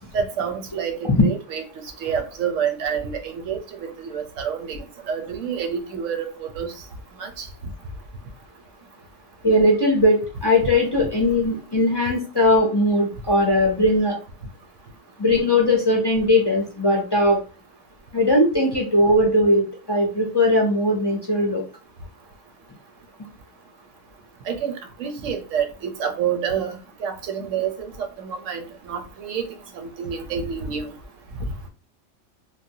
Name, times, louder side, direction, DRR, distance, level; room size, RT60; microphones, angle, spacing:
voice 1, 0.1-1.6 2.0-6.7 7.2-7.5 24.5-24.7 25.0-27.9 28.2-29.5 29.7-30.9, right 7 dB, 90° right, 1.0 m, -28 dB
voice 2, 9.4-14.2 15.2-17.4 18.1-21.6, left 1 dB, 30° left, 0.5 m, -19 dB
3.2 x 2.1 x 2.7 m
omnidirectional pair, 1.3 m